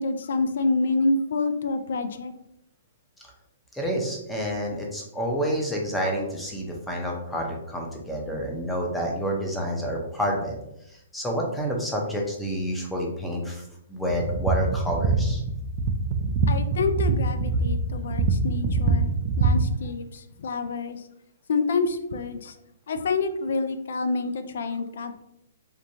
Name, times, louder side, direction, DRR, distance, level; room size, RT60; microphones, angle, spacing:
voice 1, 0.0-2.3 16.5-19.1 19.4-20.0 20.4-21.0 21.5-22.5 22.9-25.2, left 3 dB, 65° left, 8 dB, 0.3 m, -27 dB
voice 2, 3.7-10.6 11.1-13.6 13.9-15.4, equal, 5° left, -1 dB, 0.6 m, -28 dB
sound 1, 14.1-19.8, right 3 dB, 40° right, 0.4 m, -24 dB
2.9 x 2.2 x 2.6 m, 0.81 s
hypercardioid pair, 135°, 0 cm